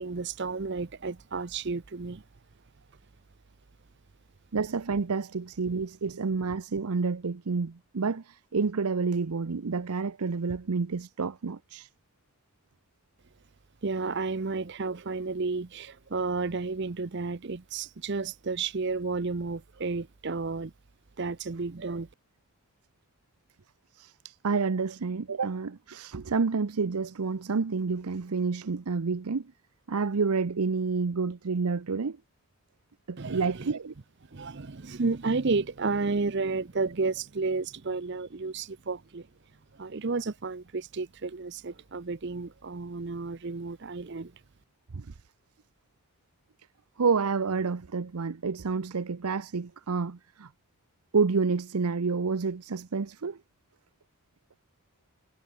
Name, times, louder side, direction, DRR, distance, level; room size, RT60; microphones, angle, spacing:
voice 1, 0.0-2.2 13.8-20.7 21.2-22.1 33.2-33.7 34.3-39.3 39.7-44.3, right 4 dB, 50° right, 0.7 m, -32 dB
voice 2, 4.5-11.9 23.9-29.5 29.9-32.2 33.1-33.9 44.9-45.1 47.0-50.5 51.1-53.4, right 4 dB, 85° right, 0.7 m, -29 dB
head